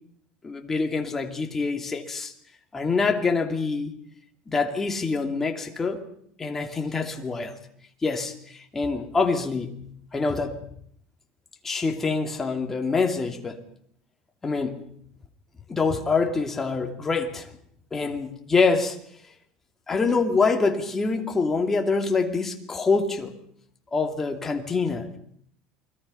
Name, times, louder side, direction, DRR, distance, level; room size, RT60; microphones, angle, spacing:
voice 1, 0.4-2.3 2.7-3.9 4.5-6.0 6.4-7.6 8.0-9.8 10.1-10.6 11.6-13.6 14.4-14.9 15.7-17.5 17.9-19.0 19.9-23.3 23.9-25.2, left 4 dB, 15° left, 2.6 m, -25 dB
29.0 x 21.5 x 5.6 m
supercardioid pair, 140°, 2 cm